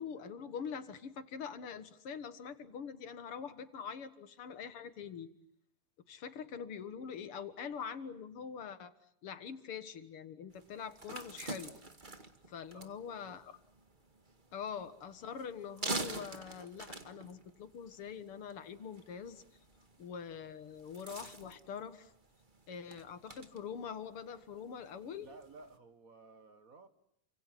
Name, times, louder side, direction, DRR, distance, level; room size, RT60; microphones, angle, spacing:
voice 1, 0.0-5.3 6.1-8.9 9.2-11.7 12.5-13.5 14.5-19.4 20.0-22.1 22.7-25.3, left 7 dB, 85° left, 11 dB, 2.6 m, -44 dB
sound 1, 10.5-25.8, right 2 dB, 25° right, 1.9 m, -47 dB
voice 2, 12.7-13.3 25.2-26.9, right 3 dB, 45° right, 10 dB, 1.7 m, -56 dB
29.5 x 25.5 x 7.8 m, 0.71 s
omnidirectional pair, 2.4 m